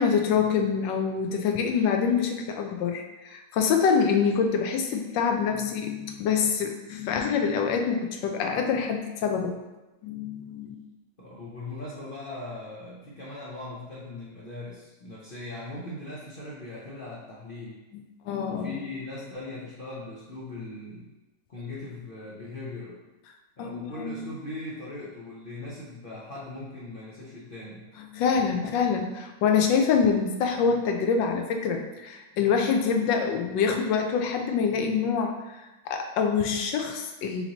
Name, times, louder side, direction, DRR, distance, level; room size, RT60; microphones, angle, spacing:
voice 1, 0.0-9.6 10.0-10.8 17.9-18.8 23.6-24.2 28.1-37.4, left 6 dB, 85° left, 3 dB, 1.3 m, -26 dB
voice 2, 11.2-17.8 18.4-21.1 21.5-23.0 23.6-27.9, left 2 dB, 70° left, -7 dB, 0.5 m, -39 dB
5.6 x 2.8 x 2.9 m, 1.1 s
omnidirectional pair, 1.9 m